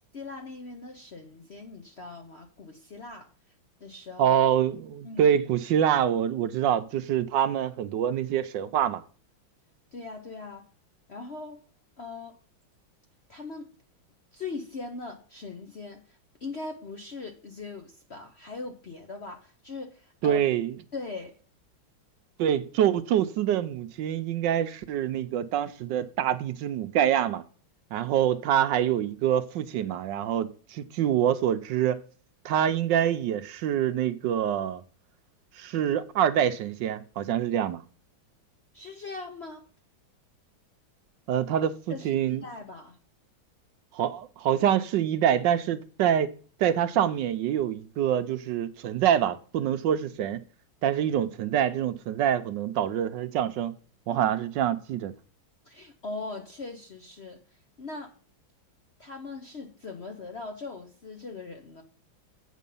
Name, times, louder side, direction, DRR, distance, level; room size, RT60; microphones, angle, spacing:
voice 1, 0.1-3.3 3.8-4.4 5.0-5.3 9.9-10.7 11.1-11.6 12.0-12.4 13.3-13.7 14.3-20.5 20.9-21.4 38.7-39.7 41.9-43.0 55.6-58.1 59.0-61.8, left 3 dB, 50° left, 0.8 m, -40 dB
voice 2, 4.2-9.0 20.2-20.7 22.4-27.4 27.9-32.0 32.4-34.8 35.5-37.8 41.3-42.4 43.9-46.3 46.6-50.4 50.8-53.7 54.1-55.1, right 10 dB, 75° right, 1.2 m, -25 dB
8.4 x 6.2 x 5.4 m
omnidirectional pair, 2.2 m